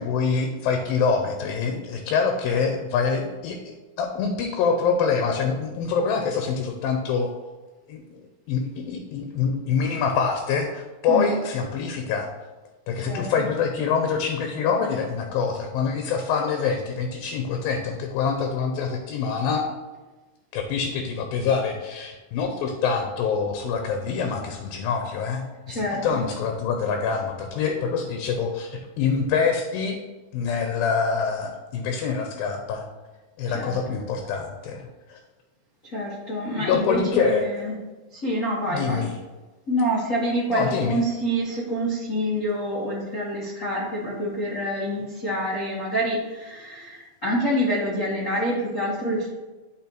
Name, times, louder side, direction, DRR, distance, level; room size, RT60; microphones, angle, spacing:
voice 1, 0.0-3.6 4.0-7.3 7.9-8.2 8.5-12.3 12.9-19.7 20.5-30.0 30.3-32.8 33.4-35.2 36.5-37.7 38.7-39.1 40.5-41.0, left 5 dB, 85° left, 4 dB, 2.5 m, -25 dB
voice 2, 11.1-11.4 13.0-13.5 25.7-26.2 33.5-34.0 35.8-37.8 38.1-39.1 39.7-49.3, equal, 60° left, -7 dB, 0.8 m, -27 dB
10.5 x 5.1 x 3.0 m, 1.2 s
omnidirectional pair, 4.1 m